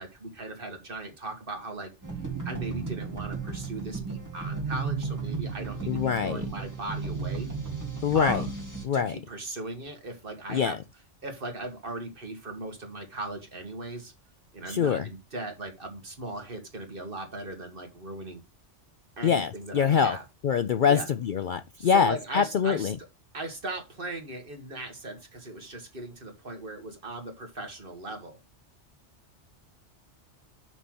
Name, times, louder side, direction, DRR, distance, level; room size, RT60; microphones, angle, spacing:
voice 1, 0.0-1.9 2.5-7.5 8.1-8.6 8.9-10.8 11.2-14.1 14.5-18.4 19.2-20.2 20.9-21.1 21.8-22.9 23.3-28.4, right 2 dB, 50° right, 1.9 m, -38 dB
sound 1, 2.0-8.9, right 4 dB, 15° right, 2.0 m, -34 dB
voice 2, 5.9-6.4 8.0-8.4 8.8-9.2 10.5-10.8 14.7-15.1 19.2-20.2 20.4-23.0, left 7 dB, 55° left, 0.6 m, -24 dB
6.0 x 5.6 x 6.1 m
omnidirectional pair, 1.2 m